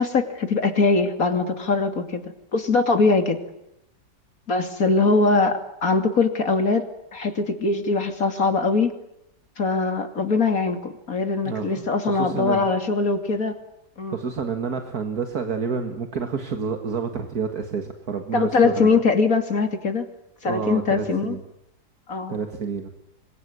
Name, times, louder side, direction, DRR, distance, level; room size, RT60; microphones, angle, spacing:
voice 1, 0.0-3.4 4.5-6.9 7.1-8.9 9.6-13.5 14.0-14.2 18.3-20.1 20.4-21.4 22.1-22.4, left 4 dB, 55° left, 6 dB, 3.1 m, -22 dB
voice 2, 11.4-12.7 14.1-19.0 20.5-21.4 22.3-22.9, right 6 dB, 60° right, 5 dB, 2.3 m, -29 dB
26.5 x 22.0 x 9.7 m, 0.79 s
omnidirectional pair, 1.8 m